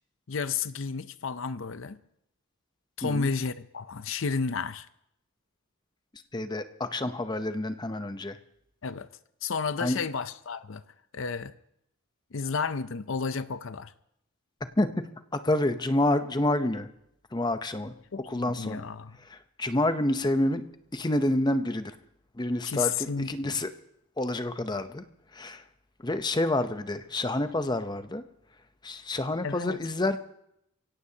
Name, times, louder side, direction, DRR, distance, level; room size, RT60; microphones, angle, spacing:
voice 1, 0.3-2.0 3.0-4.9 8.8-9.1 9.4-10.8 11.1-11.5 12.3-13.9 18.1-19.1 22.6-23.5 29.4-29.8, left 5 dB, 65° left, 0.6 m, -32 dB
voice 2, 3.0-3.3 6.3-8.4 9.8-10.0 14.8-14.9 15.4-16.9 17.3-17.9 18.3-18.9 19.2-20.6 20.9-21.9 22.3-23.7 24.2-25.0 25.3-25.6 26.0-28.2 28.8-30.2, left 1 dB, 20° left, 0.7 m, -28 dB
24.0 x 17.0 x 2.8 m
head